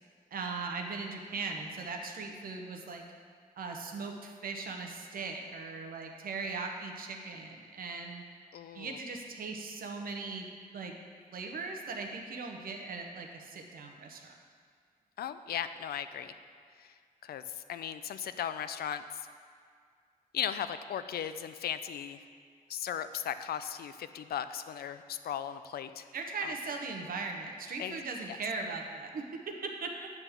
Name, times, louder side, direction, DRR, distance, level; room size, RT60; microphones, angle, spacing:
voice 1, 0.3-3.0 3.6-8.2 8.7-10.9 11.3-14.3 26.1-29.9, right 4 dB, 70° right, 2 dB, 0.8 m, -39 dB
voice 2, 8.5-9.0 15.2-16.3 16.8-16.9 17.2-19.2 20.3-22.2 22.7-26.1 26.4-26.5 27.8-28.0 28.3-28.4, left 9 dB, 85° left, 11 dB, 0.4 m, -37 dB
9.5 x 3.5 x 7.0 m, 2.1 s
wide cardioid pair, 150°, 15 cm